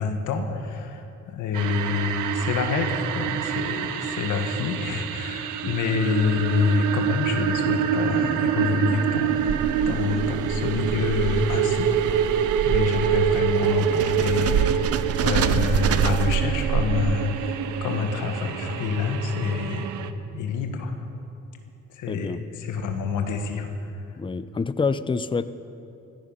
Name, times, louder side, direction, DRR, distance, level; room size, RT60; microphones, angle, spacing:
voice 1, 0.0-14.9 15.2-19.9 20.3-21.0 21.9-23.7, left 5 dB, 85° left, 5 dB, 1.6 m, -27 dB
sound 1, 1.5-20.1, right 9 dB, 85° right, 0.8 m, -26 dB
sound 2, 9.1-17.5, right 8 dB, 55° right, 0.6 m, -27 dB
voice 2, 22.1-22.4 24.2-25.5, left 4 dB, 15° left, 14 dB, 0.5 m, -27 dB
16.0 x 14.0 x 5.6 m, 2.8 s
cardioid pair, 90°, 30 cm